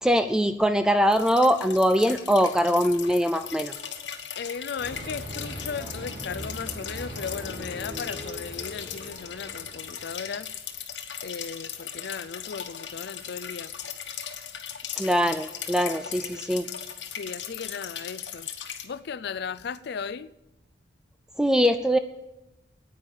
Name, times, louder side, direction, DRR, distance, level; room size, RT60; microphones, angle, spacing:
voice 1, 0.0-3.7 15.0-16.7 21.4-22.0, equal, 5° right, 0.4 m, -22 dB
sound 1, 1.1-18.8, left 8 dB, 85° left, 1.3 m, -38 dB
voice 2, 4.4-10.5 11.2-13.7 15.9-16.6 17.1-18.5 18.8-20.3, left 6 dB, 65° left, 0.4 m, -36 dB
sound 2, 4.8-10.3, right 1 dB, 80° right, 5.9 m, -40 dB
9.8 x 9.3 x 7.3 m
head